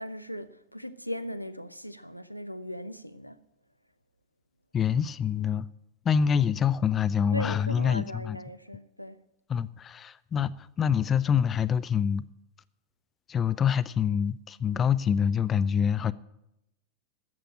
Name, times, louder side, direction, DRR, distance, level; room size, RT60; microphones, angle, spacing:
voice 1, 0.0-3.4 7.3-9.2, equal, 90° left, 0.6 m, -38 dB
voice 2, 4.7-5.7 6.1-8.4 9.5-12.2 13.3-16.1, left 7 dB, 25° left, 0.4 m, -26 dB
13.5 x 7.7 x 8.9 m
figure-of-eight pair, 90°, 0 cm